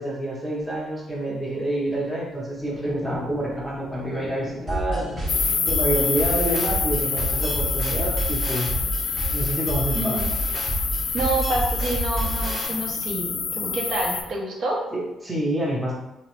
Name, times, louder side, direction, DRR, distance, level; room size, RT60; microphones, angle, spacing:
voice 1, 0.0-5.1 5.7-8.7 9.3-10.2 14.9-16.0, right 1 dB, 5° right, -4 dB, 0.7 m, -27 dB
sound 1, 0.5-14.4, left 2 dB, 30° left, 0.8 m, -41 dB
sound 2, 4.7-12.7, right 1 dB, 40° right, 0.9 m, -29 dB
sound 3, 5.3-14.2, left 6 dB, 65° left, 0.3 m, -27 dB
voice 2, 9.9-10.3 11.1-14.8, right 2 dB, 65° right, 0 dB, 0.6 m, -27 dB
2.8 x 2.0 x 2.9 m, 0.96 s
cardioid pair, 90°, 0 cm